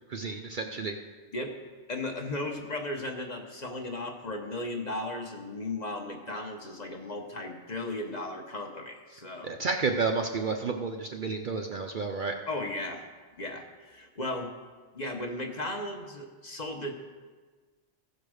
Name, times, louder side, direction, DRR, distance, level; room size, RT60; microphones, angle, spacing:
voice 1, 0.1-1.0 9.4-12.4, right 4 dB, 50° right, 4 dB, 0.7 m, -31 dB
voice 2, 1.9-9.6 12.5-13.0 13.4-14.5 14.9-16.9, left 2 dB, 35° left, 2 dB, 1.2 m, -36 dB
15.5 x 5.3 x 6.3 m, 1.4 s
omnidirectional pair, 1.3 m